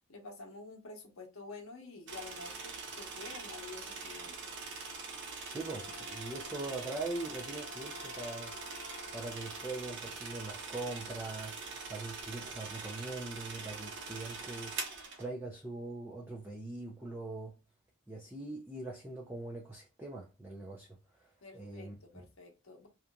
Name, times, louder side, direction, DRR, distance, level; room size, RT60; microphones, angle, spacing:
voice 1, 0.1-4.5 21.4-22.9, left 3 dB, 80° left, 0.9 m, -49 dB
sound 1, 2.1-15.3, right 4 dB, 55° right, 0.7 m, -43 dB
voice 2, 5.5-8.5 9.1-14.8 15.2-17.5 18.1-22.2, right 2 dB, 10° right, 0.4 m, -42 dB
Wind instrument woodwind instrument, 5.6-9.7, left 5 dB, 60° left, 0.4 m, -51 dB
2.8 x 2.4 x 2.2 m
head